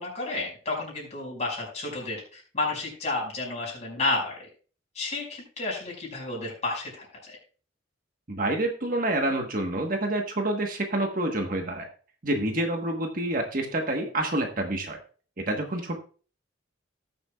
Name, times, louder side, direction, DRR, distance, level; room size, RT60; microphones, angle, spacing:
voice 1, 0.0-4.5 4.9-7.4, left 2 dB, 35° left, -2 dB, 5.4 m, -31 dB
voice 2, 8.3-11.9 12.2-15.0 15.4-16.0, right 1 dB, 45° right, 3 dB, 1.3 m, -28 dB
19.0 x 6.9 x 2.3 m, 0.39 s
head